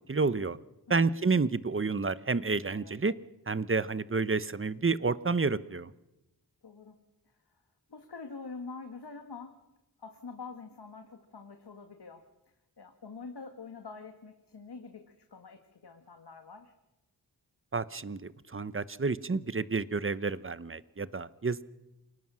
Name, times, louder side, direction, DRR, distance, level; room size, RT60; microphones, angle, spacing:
voice 1, 0.1-0.6 0.9-3.1 3.5-5.9 17.7-18.2 18.5-21.6, right 4 dB, 30° right, 16 dB, 0.9 m, -29 dB
voice 2, 6.6-7.0 7.9-9.6 10.0-12.2 12.8-16.7, left 4 dB, 75° left, 6 dB, 1.9 m, -46 dB
28.0 x 19.0 x 6.3 m, 0.97 s
wide cardioid pair, 50°, 39 cm